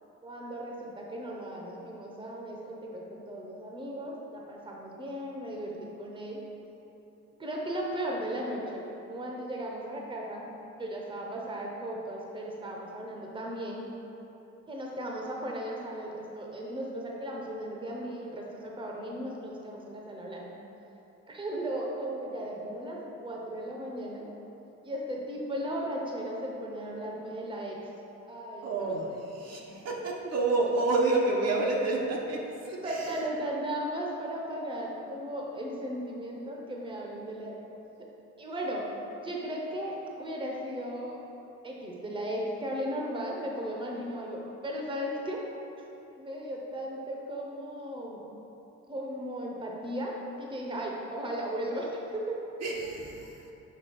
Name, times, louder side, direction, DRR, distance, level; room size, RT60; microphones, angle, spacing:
voice 1, 0.2-6.4 7.4-10.4 10.8-13.8 14.7-20.5 21.3-24.3 24.8-27.8 28.3-28.9 32.8-37.6 38.0-38.1 38.4-38.9 39.2-41.2 41.6-45.4 46.2-48.2 48.9-52.4, right 1 dB, 15° right, -2 dB, 0.9 m, -36 dB
voice 2, 28.6-33.2 52.6-53.5, right 2 dB, 55° right, -2 dB, 1.1 m, -29 dB
6.6 x 3.5 x 5.2 m, 3.0 s
cardioid pair, 90°, 30 cm